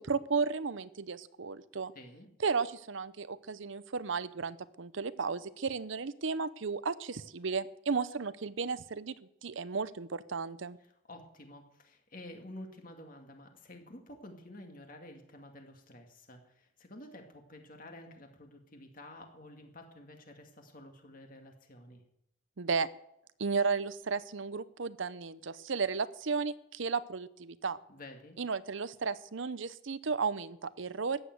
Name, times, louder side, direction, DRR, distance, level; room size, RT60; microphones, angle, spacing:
voice 1, 0.0-1.9 2.4-9.1 9.4-10.8 22.6-22.9 23.4-27.8 28.4-31.2, right 5 dB, 70° right, 16 dB, 0.7 m, -34 dB
voice 2, 1.9-2.3 10.8-22.0 27.9-28.4, left 1 dB, 40° left, 4 dB, 2.4 m, -50 dB
14.5 x 10.0 x 8.0 m, 0.78 s
head